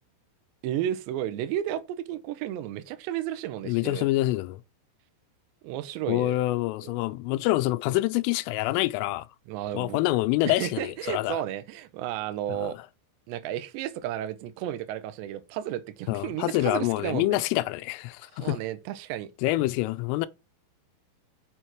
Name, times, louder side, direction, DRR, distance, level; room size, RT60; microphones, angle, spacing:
voice 1, 0.6-4.0 5.6-6.4 6.8-7.0 9.5-10.0 10.5-12.8 13.3-17.4 18.3-19.3, right 11 dB, 75° right, 2.8 m, -33 dB
voice 2, 3.7-4.6 6.1-9.3 9.7-11.4 12.5-12.7 16.1-18.6 19.4-20.3, left 17 dB, 85° left, 3.2 m, -26 dB
7.0 x 6.3 x 4.5 m
omnidirectional pair, 5.7 m